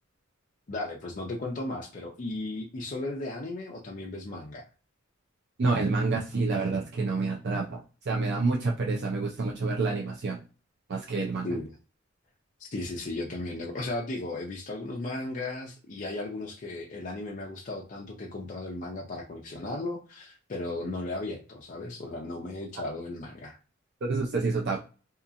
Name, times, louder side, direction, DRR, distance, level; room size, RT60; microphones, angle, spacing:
voice 1, 0.7-4.6 11.4-11.7 12.7-23.6, left 2 dB, 40° left, -1 dB, 0.5 m, -35 dB
voice 2, 5.6-10.4 10.9-11.5 24.0-24.8, right 3 dB, 55° right, 0 dB, 0.5 m, -28 dB
2.8 x 2.4 x 2.5 m, 0.33 s
head